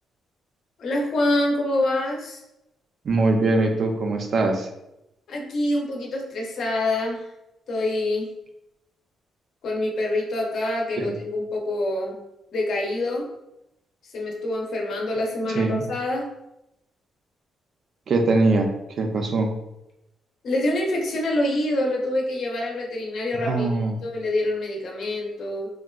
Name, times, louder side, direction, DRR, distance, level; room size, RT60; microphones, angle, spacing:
voice 1, 0.8-2.4 5.3-7.3 7.7-8.3 9.6-12.1 12.5-13.2 14.0-16.2 20.4-23.7 24.0-25.7, left 1 dB, 55° left, -1 dB, 0.7 m, -26 dB
voice 2, 3.0-4.7 11.0-11.2 15.5-15.8 18.1-19.5 23.3-24.1, right 2 dB, 45° right, 4 dB, 0.4 m, -22 dB
3.5 x 2.2 x 2.3 m, 0.87 s
cardioid pair, 150°, 0 cm